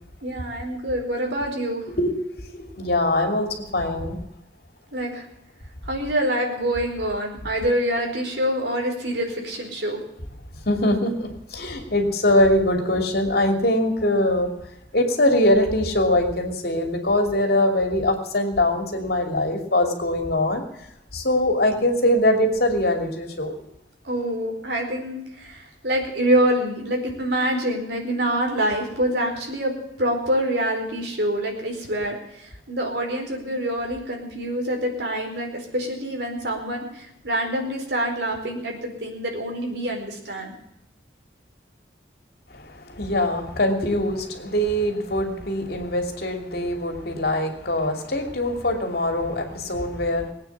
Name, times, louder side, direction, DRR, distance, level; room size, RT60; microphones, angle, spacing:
voice 1, 0.2-1.9 4.9-5.3 5.9-10.0 24.0-29.7 30.0-40.5, right 1 dB, 70° right, 2 dB, 4.5 m, -26 dB
voice 2, 1.9-4.2 10.6-14.5 14.9-20.6 21.1-23.5 42.5-50.3, left 1 dB, 60° left, 4 dB, 2.8 m, -22 dB
20.5 x 9.0 x 7.3 m, 0.81 s
head